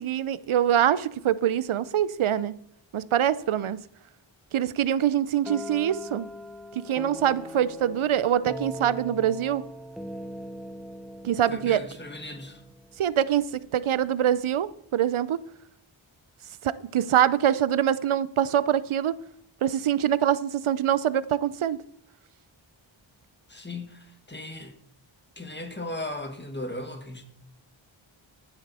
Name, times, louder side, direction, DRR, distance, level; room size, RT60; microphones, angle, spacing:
voice 1, 0.0-2.5 2.9-3.8 4.5-6.3 6.7-9.6 11.2-11.9 13.0-15.4 16.6-19.2 19.6-21.8, right 10 dB, 80° right, 0.6 m, -24 dB
sound 1, 5.5-13.2, equal, ahead, 0.7 m, -40 dB
voice 2, 11.5-12.6 23.5-24.8 25.4-27.2, left 1 dB, 20° left, 1.7 m, -37 dB
15.0 x 7.2 x 4.2 m
wide cardioid pair, 65°, 49 cm